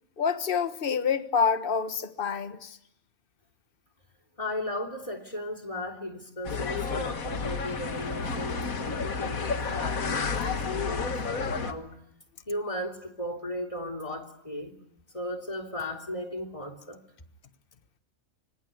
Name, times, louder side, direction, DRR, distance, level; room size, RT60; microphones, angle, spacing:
voice 1, 0.2-2.8, left 6 dB, 40° left, 1.5 m, -27 dB
voice 2, 4.4-12.0 12.5-14.8 15.1-17.0, left 1 dB, 25° left, 3.2 m, -36 dB
sound 1, 6.4-11.7, left 5 dB, 80° left, 2.1 m, -31 dB
26.0 x 25.0 x 9.2 m
omnidirectional pair, 1.5 m